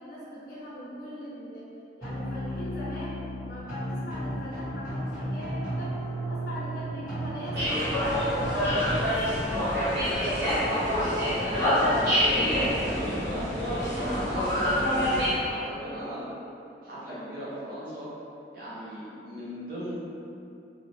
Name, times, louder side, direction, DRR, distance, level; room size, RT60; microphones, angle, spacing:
voice 1, 0.0-1.7 2.0-6.0 6.3-9.2, equal, 65° left, -9 dB, 0.6 m, -40 dB
sound 1, 2.0-9.0, right 1 dB, 15° right, 1.5 m, -34 dB
sound 2, 7.5-15.3, equal, 70° right, 1.4 m, -26 dB
voice 2, 10.1-16.3 16.8-18.1 18.5-19.9, equal, 55° right, -9 dB, 0.9 m, -37 dB
2.6 x 2.6 x 3.3 m, 2.7 s
head